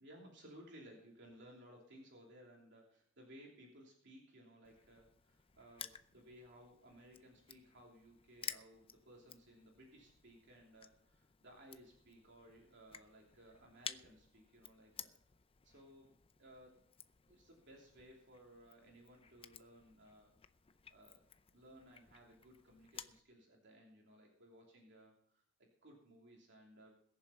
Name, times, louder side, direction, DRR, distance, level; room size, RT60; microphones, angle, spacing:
voice 1, 0.0-15.1 15.6-16.8 17.3-20.3 20.9-21.2 21.5-26.9, equal, 60° right, -1 dB, 3.0 m, -60 dB
Crushing, 4.6-23.2, left 8 dB, 25° left, 0.6 m, -54 dB
21.0 x 7.3 x 5.8 m, 0.70 s
head